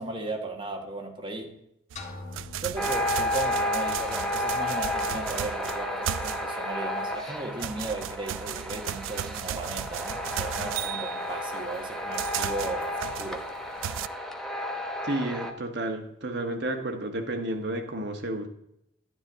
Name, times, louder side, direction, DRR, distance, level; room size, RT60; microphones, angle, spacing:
voice 1, 0.0-1.6 2.6-13.5, right 2 dB, 25° right, 2 dB, 1.4 m, -36 dB
sound 1, 1.9-6.7 7.1-14.1, right 10 dB, 85° right, 0.3 m, -35 dB
sound 2, 2.0-3.9, left 2 dB, 40° left, 1.7 m, -44 dB
sound 3, 2.8-15.5, left 1 dB, ahead, 0.8 m, -32 dB
voice 2, 15.0-18.5, right 1 dB, 60° right, 4 dB, 1.3 m, -31 dB
11.5 x 9.9 x 3.6 m, 0.79 s
head